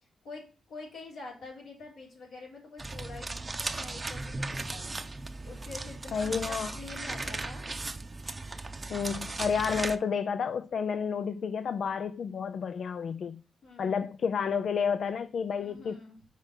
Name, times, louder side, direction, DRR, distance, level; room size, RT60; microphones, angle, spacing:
voice 1, 0.2-3.3 3.7-5.0 5.4-7.6 13.6-14.1 15.6-16.2, left 3 dB, 85° left, 3.5 m, -46 dB
sound 1, 2.8-10.0, right 2 dB, 35° right, 0.7 m, -37 dB
voice 2, 6.1-6.8 8.9-13.4 13.8-16.0, left 6 dB, 70° left, 0.4 m, -30 dB
6.0 x 4.0 x 5.3 m
supercardioid pair, 50°, 0 cm